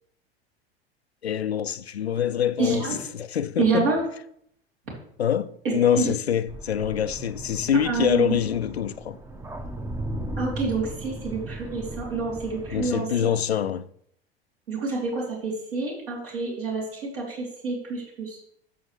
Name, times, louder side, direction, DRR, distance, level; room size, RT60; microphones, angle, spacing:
voice 1, 1.2-3.9 5.2-9.2 12.7-13.9, left 9 dB, 85° left, 0.5 m, -25 dB
voice 2, 2.6-3.0 3.6-4.0 5.6-6.1 7.8-8.3 10.4-13.1 14.7-18.4, right 4 dB, 65° right, 3.0 m, -28 dB
sound 1, 6.5-13.0, right 1 dB, 10° right, 0.7 m, -36 dB
13.0 x 6.4 x 3.2 m
figure-of-eight pair, 80°, 31 cm